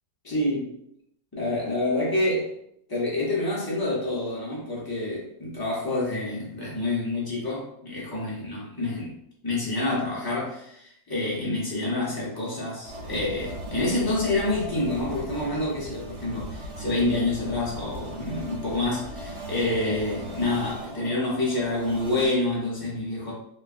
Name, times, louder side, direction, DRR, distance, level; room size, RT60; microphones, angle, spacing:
voice 1, 0.2-0.6 1.3-2.5 2.9-9.2 9.4-23.3, left 2 dB, 25° left, -6 dB, 0.4 m, -27 dB
sound 1, 12.8-22.3, right 1 dB, 80° right, 1.2 m, -38 dB
3.1 x 2.3 x 2.4 m, 0.75 s
omnidirectional pair, 1.8 m